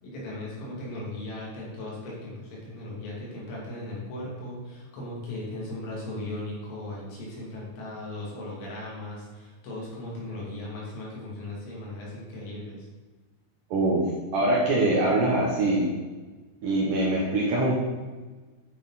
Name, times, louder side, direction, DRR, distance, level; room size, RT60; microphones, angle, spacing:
voice 1, 0.0-12.9, left 1 dB, 85° left, -5 dB, 5.2 m, -37 dB
voice 2, 13.7-14.0 14.3-15.9 16.6-17.7, right 2 dB, 70° right, -4 dB, 2.1 m, -23 dB
10.5 x 6.8 x 4.2 m, 1.3 s
omnidirectional pair, 5.3 m